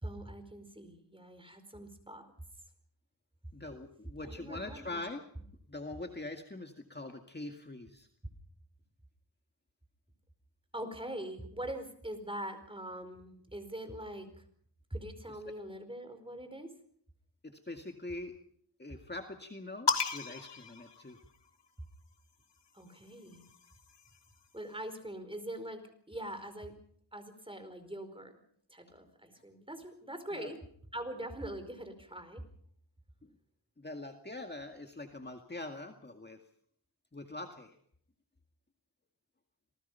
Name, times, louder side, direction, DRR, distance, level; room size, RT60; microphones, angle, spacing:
voice 1, 0.0-2.3 4.2-5.0 10.7-14.4 14.9-16.7 22.7-23.4 24.5-26.7 27.1-28.4 28.7-30.6 30.9-32.4, right 1 dB, 10° right, 8 dB, 4.8 m, -43 dB
voice 2, 3.5-5.2 5.7-8.1 17.4-18.4 18.8-21.2 29.4-29.5 30.3-30.5 33.2-33.4 33.8-36.4 37.1-37.8, left 2 dB, 25° left, 4 dB, 2.1 m, -43 dB
sound 1, 19.9-21.7 22.8-24.4, left 3 dB, 75° left, 2.0 m, -36 dB
27.5 x 20.0 x 5.7 m, 0.64 s
wide cardioid pair, 90°, 42 cm